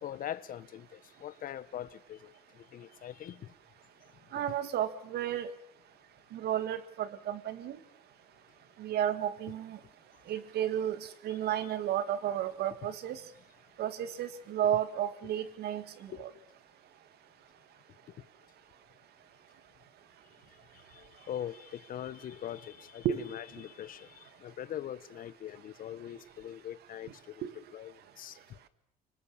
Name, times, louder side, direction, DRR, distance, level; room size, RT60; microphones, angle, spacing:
voice 1, 0.0-3.5 16.1-16.2 18.1-18.2 20.7-27.4 27.7-27.9 28.2-28.4, left 11 dB, 55° left, 1.1 m, -42 dB
voice 2, 4.3-5.5 6.3-7.8 8.8-9.8 10.3-11.0 11.2-13.2 13.8-16.3 23.0-23.2 27.4-27.5, right 10 dB, 70° right, 2.0 m, -32 dB
25.5 x 24.0 x 7.2 m
cardioid pair, 110°, 17 cm